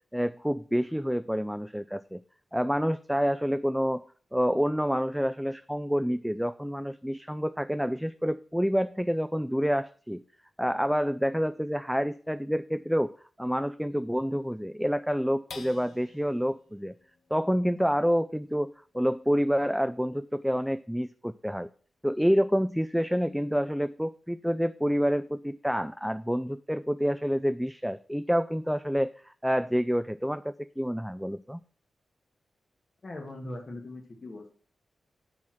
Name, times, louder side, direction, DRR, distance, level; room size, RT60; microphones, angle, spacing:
voice 1, 0.1-2.2 2.5-10.2 10.6-16.9 17.3-21.7 22.0-31.6, equal, ahead, 12 dB, 0.3 m, -28 dB
sound 1, 15.5-22.2 22.7-22.8 23.2-23.7, left 4 dB, 80° left, 1.4 m, -53 dB
voice 2, 33.0-34.5, left 1 dB, 40° left, 2 dB, 1.7 m, -40 dB
12.0 x 4.4 x 6.3 m, 0.43 s
wide cardioid pair, 95°, 0 cm